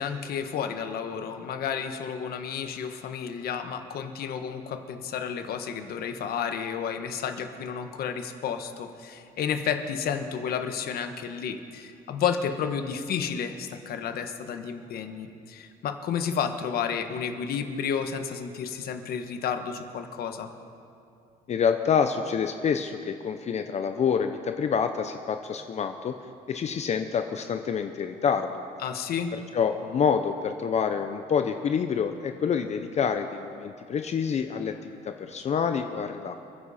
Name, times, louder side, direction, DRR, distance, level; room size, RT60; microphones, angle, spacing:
voice 1, 0.0-20.5 28.8-29.3, left 7 dB, 65° left, 7 dB, 1.3 m, -31 dB
voice 2, 21.5-26.1 26.5-28.6 29.5-36.4, left 6 dB, 40° left, 7 dB, 0.7 m, -27 dB
28.0 x 10.5 x 4.2 m, 2.5 s
cardioid pair, 110°, 17 cm